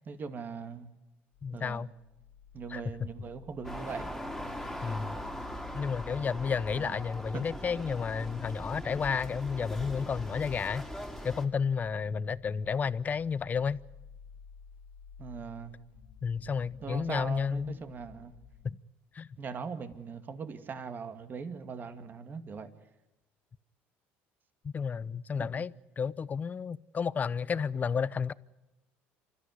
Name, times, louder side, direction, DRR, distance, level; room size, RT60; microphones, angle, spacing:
voice 1, 0.1-0.9 1.5-1.9 2.5-4.1 6.8-6.9 7.3-7.4 15.2-15.8 16.8-18.3 19.4-22.7 25.4-25.5, right 5 dB, 40° right, 2.4 m, -40 dB
sound 1, 1.3-18.7, left 6 dB, 75° left, 1.6 m, -53 dB
voice 2, 1.4-1.9 2.7-2.8 4.8-5.2 5.7-10.8 11.2-13.8 16.2-17.8 18.6-18.8 19.1-19.3 24.6-28.3, left 6 dB, 30° left, 0.7 m, -32 dB
sound 2, 3.6-11.5, equal, 5° left, 3.5 m, -41 dB
28.0 x 13.5 x 9.7 m
supercardioid pair, 95°, 5 cm